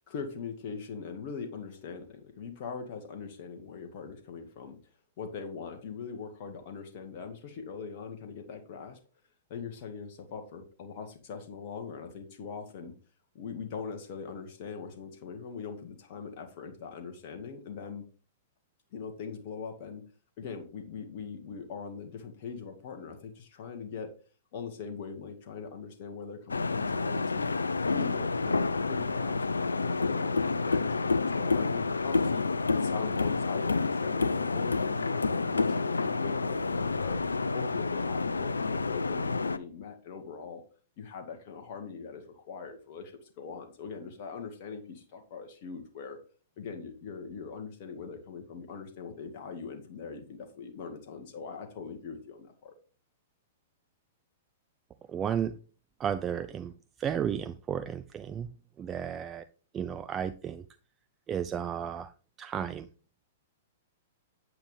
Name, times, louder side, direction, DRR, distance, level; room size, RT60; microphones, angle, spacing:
voice 1, 0.0-4.8 5.2-9.0 9.5-12.9 13.3-18.0 18.9-20.0 20.4-24.1 24.5-27.5 27.9-32.4 32.7-37.2 37.5-40.6 41.0-46.2 46.6-52.7, left 5 dB, 45° left, 4 dB, 1.9 m, -41 dB
sound 1, 26.5-39.6, left 4 dB, 85° left, 0.6 m, -29 dB
voice 2, 55.1-55.5 56.0-56.7 57.0-58.5 58.8-59.4 59.7-60.6 61.3-62.1 62.4-62.9, right 8 dB, 25° right, 11 dB, 0.5 m, -33 dB
9.3 x 8.8 x 3.5 m, 0.37 s
figure-of-eight pair, 110°, 0 cm